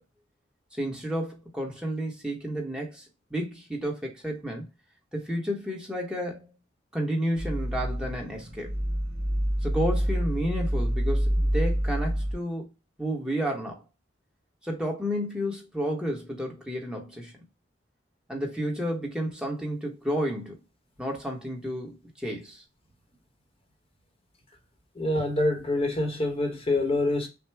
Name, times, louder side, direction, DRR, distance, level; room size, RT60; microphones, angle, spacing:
voice 1, 0.8-3.1 3.3-4.6 5.1-6.6 6.9-8.7 9.6-12.7 13.0-13.8 14.6-17.3 18.3-20.6 21.0-22.6, equal, 5° right, 1.0 m, -31 dB
sound 1, 7.4-12.3, equal, 65° right, 1.5 m, -27 dB
voice 2, 24.9-27.3, left 2 dB, 30° left, 1.0 m, -26 dB
6.0 x 2.2 x 3.4 m
head